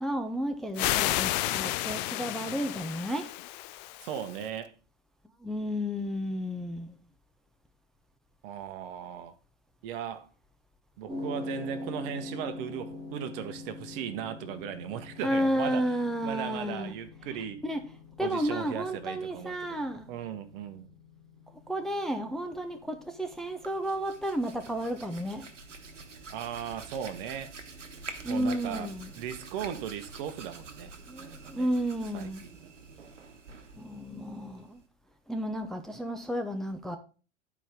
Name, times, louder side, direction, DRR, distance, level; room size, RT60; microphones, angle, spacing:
voice 1, 0.0-3.3 5.4-7.0 15.2-16.9 17.6-17.8 18.2-20.1 21.7-25.5 28.2-29.1 31.1-32.5 33.7-34.8 35.3-37.0, equal, ahead, 0.7 m, -32 dB
sound 1, 0.8-4.4, left 17 dB, 40° left, 0.4 m, -31 dB
voice 2, 4.0-4.7 8.4-9.3 9.8-10.3 11.0-15.9 16.2-17.6 18.2-19.8 20.1-20.9 26.3-27.5 28.3-28.9 29.2-30.9 31.2-31.7 32.1-33.1, right 9 dB, 50° right, 1.2 m, -37 dB
sound 2, 11.1-29.3, left 2 dB, 15° right, 3.6 m, -45 dB
Hands, 23.4-34.9, right 4 dB, 80° right, 1.2 m, -47 dB
11.0 x 4.8 x 3.6 m
figure-of-eight pair, 95°, 36 cm